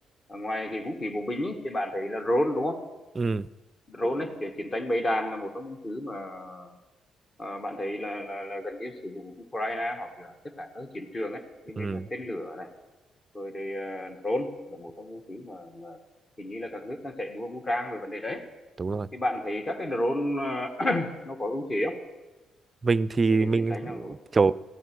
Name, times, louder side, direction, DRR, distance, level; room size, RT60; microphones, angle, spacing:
voice 1, 0.3-2.8 3.9-6.7 7.4-12.7 13.3-16.0 16.4-18.5 19.1-22.0 23.3-24.2, left 1 dB, 30° left, 7 dB, 1.7 m, -32 dB
voice 2, 3.2-3.5 11.8-12.1 18.8-19.1 22.8-24.5, right 4 dB, 30° right, 19 dB, 0.4 m, -25 dB
16.0 x 13.5 x 6.2 m, 1.1 s
cardioid pair, 90°, 0 cm